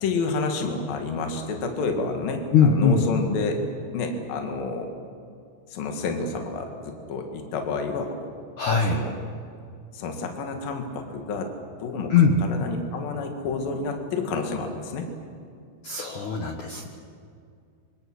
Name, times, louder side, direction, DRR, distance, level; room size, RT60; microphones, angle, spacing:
voice 1, 0.0-3.6 3.9-4.9 5.7-8.3 8.9-9.1 9.9-11.5 11.8-12.1 12.4-15.1, left 4 dB, 55° left, 4 dB, 3.4 m, -29 dB
voice 2, 2.5-3.0 8.6-9.0 12.1-12.4 15.8-16.9, left 5 dB, 80° left, 3 dB, 1.7 m, -20 dB
26.0 x 25.0 x 6.4 m, 2.3 s
omnidirectional pair, 5.5 m